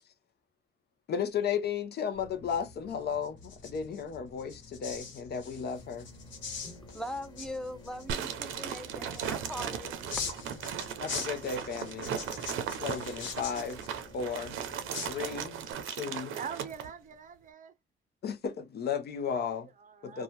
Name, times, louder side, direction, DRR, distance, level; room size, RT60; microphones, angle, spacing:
voice 1, 1.1-6.1 11.0-12.2 12.8-13.8 14.1-14.6 15.1-16.4 18.2-19.7 20.0-20.2, left 7 dB, 55° left, 0.6 m, -34 dB
sound 1, 2.1-15.7, left 5 dB, 75° left, 1.2 m, -44 dB
sound 2, 5.7-15.0, left 2 dB, 20° left, 1.3 m, -53 dB
voice 2, 6.9-10.3, left 1 dB, 5° left, 0.6 m, -41 dB
sound 3, 8.1-16.9, right 8 dB, 85° right, 0.6 m, -37 dB
voice 3, 16.3-17.7 19.6-20.2, right 7 dB, 40° right, 0.5 m, -43 dB
2.7 x 2.2 x 3.1 m
cardioid pair, 90°, 20 cm